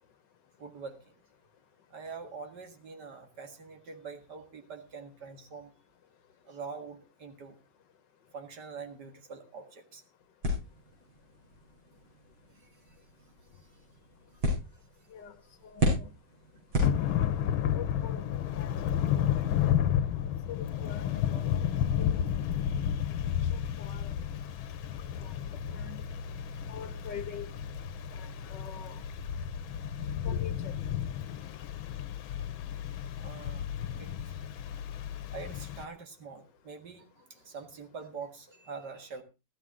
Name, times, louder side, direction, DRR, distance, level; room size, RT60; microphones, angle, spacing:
voice 1, 0.6-1.2 1.9-5.7 6.5-7.6 8.3-10.0 12.6-13.0 33.2-33.7 34.0-34.1 35.3-39.2, right 5 dB, 55° right, 5 dB, 2.2 m, -44 dB
sound 1, 10.4-17.5, equal, 90° right, 6.9 m, -35 dB
voice 2, 15.6-16.1 16.9-17.4 17.8-18.2 18.5-18.7 19.4-19.8 20.5-21.6 22.0-22.2 23.8-24.1 25.2-25.3 25.7-26.0 26.7-27.5 28.2-29.0 30.2-30.7, left 8 dB, 65° left, 12 dB, 1.5 m, -44 dB
Thunder / Rain, 16.8-35.8, left 9 dB, 80° left, 1.6 m, -32 dB
15.0 x 13.0 x 3.6 m, 0.28 s
omnidirectional pair, 2.2 m